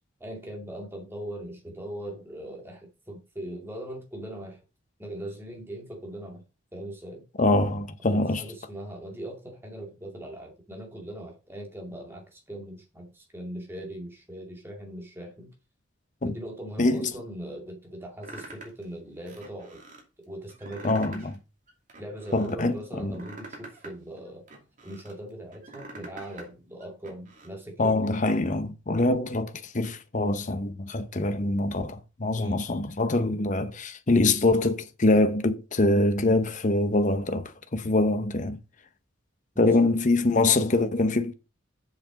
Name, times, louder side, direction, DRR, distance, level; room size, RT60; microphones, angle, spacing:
voice 1, 0.2-4.6 5.0-6.4 6.7-7.3 8.0-15.5 16.2-19.8 20.3-21.2 22.0-24.4 24.8-28.2 32.4-32.6 39.5-39.9, right 1 dB, 10° right, 2.3 m, -40 dB
voice 2, 7.4-8.4 16.2-16.3 16.8-17.1 20.8-21.3 22.3-23.2 27.8-38.6 39.6-41.3, left 2 dB, 40° left, 0.8 m, -24 dB
sound 1, 18.2-18.8 19.3-20.0 20.5-21.4 21.7-22.5 23.0-25.1 25.5-26.5 26.8-27.5, right 2 dB, 40° right, 2.6 m, -45 dB
7.5 x 5.9 x 5.1 m
head